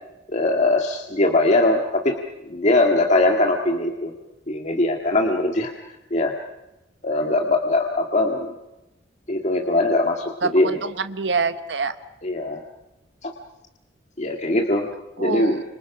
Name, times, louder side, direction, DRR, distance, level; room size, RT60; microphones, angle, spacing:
voice 1, 0.3-2.2 2.4-4.1 4.5-5.7 6.1-6.3 7.0-8.5 9.3-10.8 12.2-12.6 13.2-13.3 14.2-14.9 15.2-15.6, left 2 dB, 40° left, 2 dB, 1.9 m, -21 dB
voice 2, 10.4-11.9 15.2-15.6, right 4 dB, 70° right, 11 dB, 1.1 m, -26 dB
29.5 x 27.0 x 6.1 m, 0.98 s
head